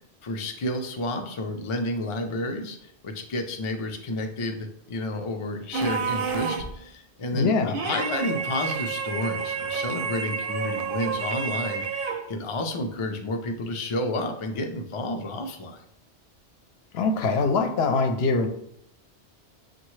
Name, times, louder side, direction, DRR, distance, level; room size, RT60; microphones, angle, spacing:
voice 1, 0.2-15.8, left 1 dB, 50° left, 4 dB, 0.4 m, -31 dB
sound 1, 5.7-6.8 7.7-12.3, right 5 dB, 60° right, 0.6 m, -29 dB
voice 2, 7.3-7.7 16.9-18.5, left 4 dB, 70° left, 5 dB, 0.8 m, -23 dB
6.3 x 2.2 x 3.1 m, 0.74 s
omnidirectional pair, 1.1 m